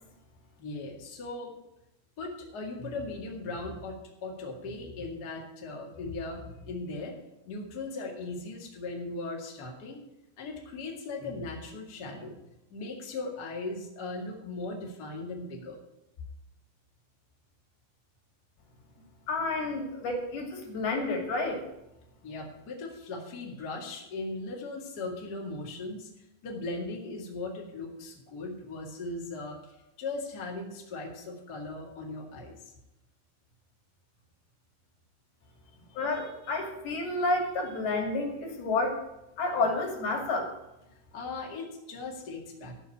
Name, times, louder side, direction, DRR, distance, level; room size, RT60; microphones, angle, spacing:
voice 1, 0.6-1.6 2.2-7.2 7.4-10.0 10.4-12.4 12.7-15.8 22.2-32.7 41.1-42.8, left 3 dB, 30° left, -1 dB, 2.1 m, -38 dB
voice 2, 19.3-21.7 36.0-39.0 39.4-40.5, left 2 dB, 85° left, 1 dB, 4.3 m, -30 dB
14.0 x 5.7 x 8.4 m, 0.89 s
omnidirectional pair, 4.3 m